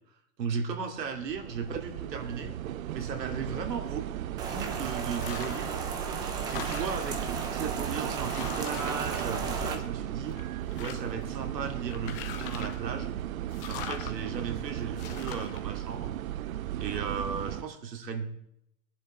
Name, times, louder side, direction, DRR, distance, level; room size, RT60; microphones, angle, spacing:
voice 1, 0.4-2.6 2.9-5.8 6.5-13.1 13.6-16.1 16.8-18.3, right 5 dB, 85° right, 4 dB, 2.9 m, -36 dB
sound 1, 1.0-17.6, right 13 dB, 60° right, 0.7 m, -36 dB
Rain, 4.4-9.8, right 5 dB, 10° right, 0.6 m, -35 dB
sound 2, 5.1-5.7 6.1-7.2 7.8-7.9 8.2-10.0 10.3-11.2 11.9-12.9 13.5-14.1 15.0-15.6, left 10 dB, 35° left, 1.4 m, -42 dB
22.0 x 10.5 x 4.5 m, 0.77 s
hypercardioid pair, 160°, 48 cm